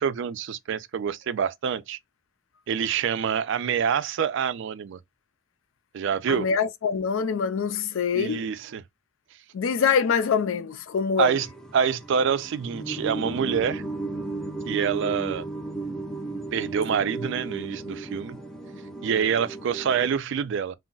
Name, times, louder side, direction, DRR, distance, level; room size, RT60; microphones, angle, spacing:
voice 1, 0.0-2.0 2.7-5.0 5.9-6.5 8.1-8.8 11.2-11.5 11.7-13.8 14.7-15.4 16.5-18.4 19.0-20.7, right 7 dB, 60° right, 0.3 m, -26 dB
voice 2, 6.3-8.5 9.5-11.4, left 6 dB, 65° left, 0.4 m, -25 dB
sound 1, 11.4-20.1, right 2 dB, ahead, 0.4 m, -35 dB
2.2 x 2.0 x 3.8 m
head